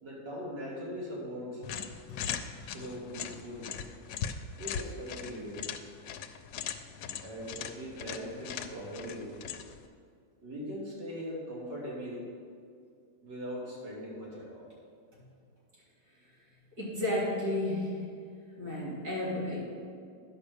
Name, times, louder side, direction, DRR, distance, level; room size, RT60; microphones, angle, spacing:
voice 1, 0.0-1.6 2.6-3.7 4.6-5.7 7.2-9.3 10.4-12.3 13.2-14.7, equal, 80° right, -5 dB, 3.2 m, -40 dB
sound 1, 1.6-9.9, left 8 dB, 85° left, 1.2 m, -40 dB
voice 2, 16.8-18.0 18.6-19.6, left 1 dB, 60° right, -8 dB, 3.5 m, -32 dB
10.5 x 5.3 x 6.7 m, 2.3 s
omnidirectional pair, 1.9 m